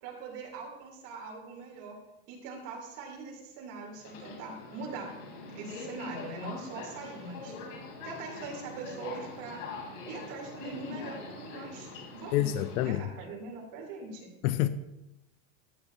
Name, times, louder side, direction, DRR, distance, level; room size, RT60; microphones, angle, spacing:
voice 1, 0.0-2.0 2.3-5.1 5.5-7.5 8.0-9.6 10.1-14.3, right 4 dB, 45° right, 3.1 m, -42 dB
Subway metro underground, 4.0-12.9, left 4 dB, 65° left, 3.4 m, -43 dB
voice 2, 12.3-13.0 14.4-14.7, left 14 dB, 85° left, 0.6 m, -27 dB
13.5 x 8.4 x 2.7 m
supercardioid pair, 155°, 43 cm